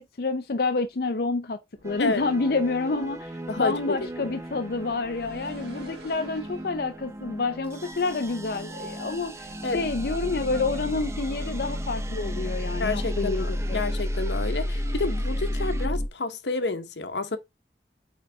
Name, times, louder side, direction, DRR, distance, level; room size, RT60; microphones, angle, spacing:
voice 1, 0.0-1.6 1.8-13.8, left 3 dB, 60° left, 0.6 m, -28 dB
sound 1, 1.8-15.9, right 1 dB, 15° right, 0.7 m, -40 dB
sound 2, 1.8-7.3, right 1 dB, 65° right, 2.5 m, -49 dB
voice 2, 3.5-4.3 9.6-9.8 12.8-17.4, left 3 dB, 85° left, 1.1 m, -29 dB
sound 3, 4.9-5.5 5.8-6.1 6.5-6.6 6.9-7.0 7.7-16.1, left 1 dB, 35° left, 0.8 m, -31 dB
8.9 x 4.0 x 3.5 m
head